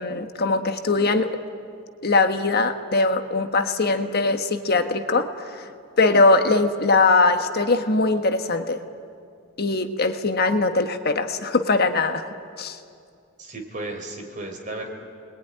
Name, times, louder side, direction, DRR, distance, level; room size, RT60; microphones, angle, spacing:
voice 1, 0.0-1.4 2.0-5.7 6.0-8.8 9.6-12.2 12.6-12.8, left 3 dB, 50° left, 7 dB, 1.4 m, -21 dB
voice 2, 13.4-14.9, right 2 dB, 40° right, 2 dB, 4.2 m, -34 dB
28.0 x 21.5 x 9.9 m, 2.4 s
head